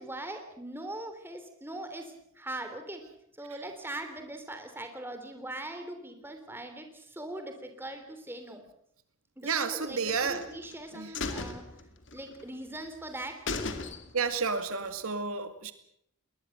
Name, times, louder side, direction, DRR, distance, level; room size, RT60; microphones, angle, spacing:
voice 1, 0.0-3.0 3.4-8.6 9.4-11.6 12.1-13.4, right 1 dB, 10° right, 6 dB, 3.3 m, -41 dB
voice 2, 9.4-10.4 10.9-11.1 14.1-15.7, right 5 dB, 85° right, 9 dB, 2.2 m, -31 dB
sound 1, 10.1-10.8 11.1-12.4 12.8-12.9 13.2-13.3 13.5-14.4 14.7-14.8, left 3 dB, 60° left, 2.3 m, -36 dB
21.5 x 20.0 x 7.9 m, 0.72 s
head